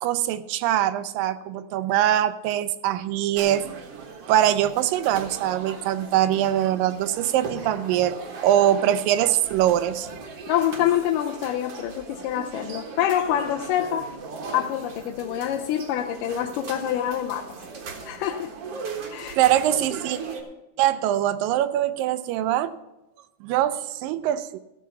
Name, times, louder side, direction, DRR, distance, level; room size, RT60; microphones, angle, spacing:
voice 1, 0.0-3.6 4.3-8.2 8.4-10.1 19.4-20.2 20.8-22.7 23.4-24.6, right 12 dB, 80° right, 13 dB, 2.3 m, -22 dB
sound 1, 3.4-20.4, right 4 dB, 55° right, 1.9 m, -38 dB
voice 2, 10.5-14.1 14.5-17.5 18.1-18.5 19.1-19.4, left 11 dB, 80° left, 4 dB, 2.1 m, -26 dB
15.0 x 7.1 x 5.7 m, 0.96 s
omnidirectional pair, 4.0 m